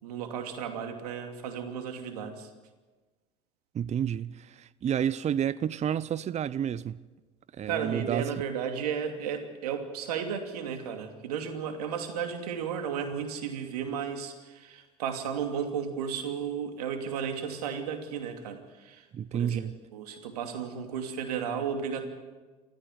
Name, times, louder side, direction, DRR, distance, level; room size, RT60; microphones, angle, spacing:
voice 1, 0.0-2.5 7.7-19.6 19.9-22.0, right 7 dB, 80° right, 2.8 m, -34 dB
voice 2, 3.7-7.0 7.5-8.3 19.1-19.7, right 9 dB, 35° right, 0.7 m, -30 dB
28.5 x 14.5 x 9.3 m
hypercardioid pair, 70°, 20 cm